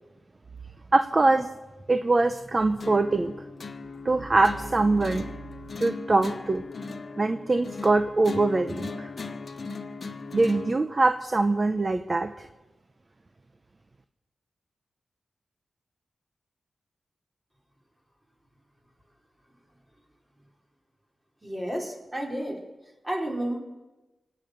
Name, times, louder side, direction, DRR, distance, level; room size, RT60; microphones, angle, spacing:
voice 1, 0.9-1.5 1.9-3.3 4.0-5.3 5.8-6.6 7.2-9.1 10.3-12.5, right 2 dB, 35° right, 9 dB, 0.7 m, -23 dB
sound 1, 2.8-10.8, left 4 dB, 50° left, 1.3 m, -38 dB
voice 2, 21.4-22.6 23.0-23.6, right 1 dB, 20° right, 0 dB, 4.0 m, -31 dB
24.5 x 8.7 x 6.5 m, 1.1 s
cardioid pair, 80°, 0 cm